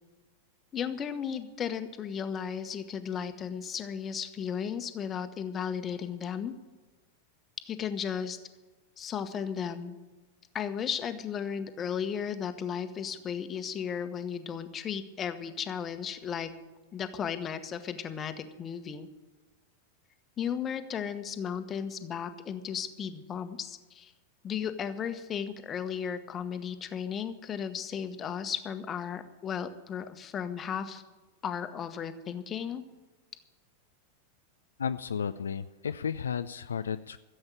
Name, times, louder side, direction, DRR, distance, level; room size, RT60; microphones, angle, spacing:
voice 1, 0.7-6.5 7.6-8.4 9.0-10.0 10.5-16.5 16.9-19.1 20.4-24.1 24.4-31.0 31.4-32.8, left 7 dB, 25° left, 9 dB, 1.2 m, -35 dB
voice 2, 34.8-37.2, left 7 dB, 70° left, 11 dB, 0.4 m, -33 dB
14.5 x 7.9 x 8.9 m, 1.2 s
figure-of-eight pair, 90°, 0 cm